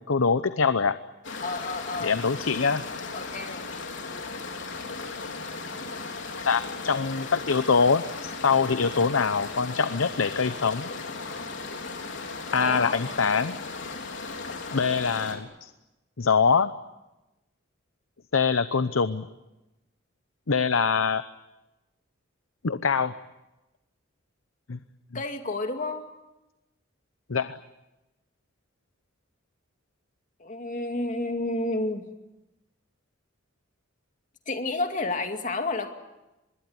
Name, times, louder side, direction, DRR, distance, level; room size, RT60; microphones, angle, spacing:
voice 1, 0.1-1.0 2.0-2.8 6.4-10.9 12.5-13.6 14.7-15.7 16.2-16.7 18.3-19.3 20.5-21.2 22.6-23.1 24.7-24.8 27.3-27.6, left 5 dB, 85° left, 12 dB, 0.8 m, -24 dB
sound 1, 1.2-15.4, left 3 dB, 65° left, 3.8 m, -36 dB
voice 2, 1.4-2.2 3.1-3.7 12.6-13.0 25.1-26.1 30.4-32.1 34.5-35.9, left 2 dB, 40° left, 5 dB, 2.4 m, -30 dB
25.0 x 21.5 x 9.7 m, 0.99 s
head